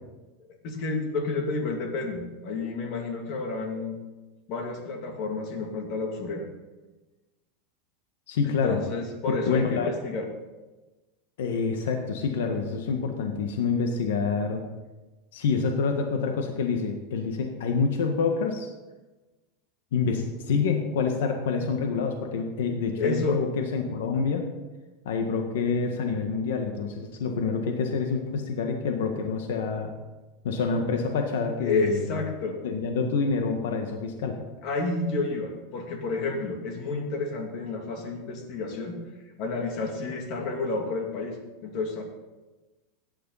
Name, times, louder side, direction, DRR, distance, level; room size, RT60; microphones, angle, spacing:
voice 1, 0.6-4.0 4.5-6.5 8.4-10.3 23.0-23.4 31.6-32.6 34.6-38.9 39.4-41.4 41.6-42.0, left 3 dB, 45° left, 2 dB, 2.7 m, -30 dB
voice 2, 8.3-8.8 9.3-9.9 11.4-14.6 15.3-18.7 19.9-24.4 25.0-29.9 30.4-32.2 32.6-34.3, left 5 dB, 85° left, 4 dB, 1.6 m, -27 dB
17.0 x 10.0 x 4.2 m, 1.1 s
supercardioid pair, 160°, 0 cm